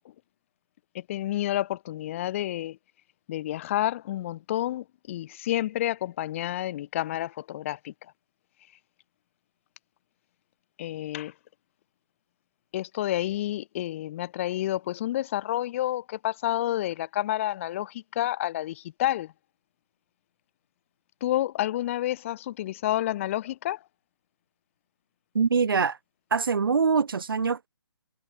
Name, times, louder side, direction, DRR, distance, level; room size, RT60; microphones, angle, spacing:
voice 1, 0.9-2.8 3.3-7.9 10.8-11.3 12.7-19.3 21.2-23.8, left 14 dB, 30° left, 1.7 m, -29 dB
voice 2, 25.3-26.0 26.3-27.7, right 5 dB, 60° right, 5.3 m, -24 dB
figure-of-eight pair, 145°, 13 cm